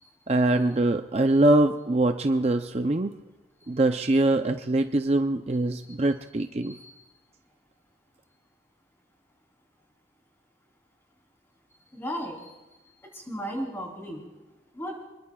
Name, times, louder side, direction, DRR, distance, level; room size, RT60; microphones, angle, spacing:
voice 1, 0.3-3.1 3.7-6.7, right 2 dB, 35° right, 7 dB, 0.5 m, -23 dB
voice 2, 5.7-6.3 6.6-7.0 11.9-12.5 13.1-14.3 14.7-15.0, equal, 15° left, 0 dB, 3.4 m, -36 dB
28.0 x 21.0 x 2.3 m, 1.1 s
head